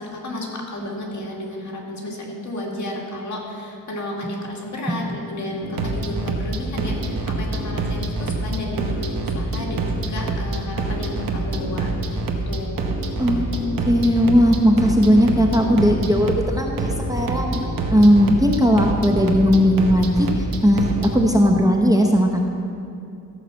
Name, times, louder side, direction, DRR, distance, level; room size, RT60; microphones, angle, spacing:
voice 1, 0.0-12.8 18.6-18.9, left 1 dB, 55° left, -2 dB, 2.1 m, -32 dB
sound 1, 5.6-21.1, right 2 dB, 80° right, 1.2 m, -26 dB
voice 2, 13.9-17.6 17.9-20.3 20.6-22.4, equal, 10° right, 0 dB, 0.8 m, -17 dB
14.0 x 5.7 x 7.1 m, 2.5 s
wide cardioid pair, 125°, 34 cm